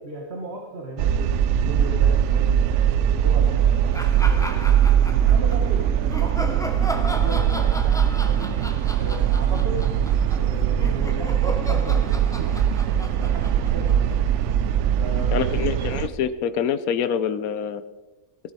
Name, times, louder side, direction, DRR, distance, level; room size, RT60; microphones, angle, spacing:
voice 1, 0.0-4.8 5.3-8.5 8.9-9.9 10.3-12.6 12.8-14.3 14.9-15.9, right 2 dB, 45° right, 0 dB, 1.7 m, -36 dB
sound 1, 1.0-16.1, right 9 dB, 70° right, 0.8 m, -21 dB
sound 2, 3.9-5.6 6.1-14.4, equal, 5° left, 0.5 m, -35 dB
voice 2, 15.3-17.8, left 8 dB, 85° left, 12 dB, 1.1 m, -25 dB
15.0 x 11.5 x 4.2 m, 1.1 s
omnidirectional pair, 1.5 m